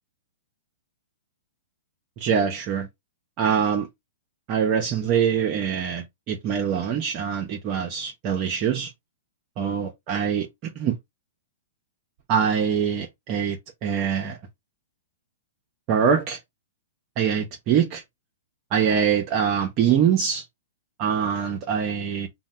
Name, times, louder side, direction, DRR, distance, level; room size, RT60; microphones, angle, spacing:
voice 1, 2.2-2.9 3.4-3.9 4.5-8.9 9.6-10.5 10.8-10.9 12.3-14.4 15.9-16.4 17.2-18.0 18.7-20.4 21.0-22.3, right 7 dB, 40° right, 0.6 m, -24 dB
2.6 x 2.0 x 3.2 m
hypercardioid pair, 130°, 0 cm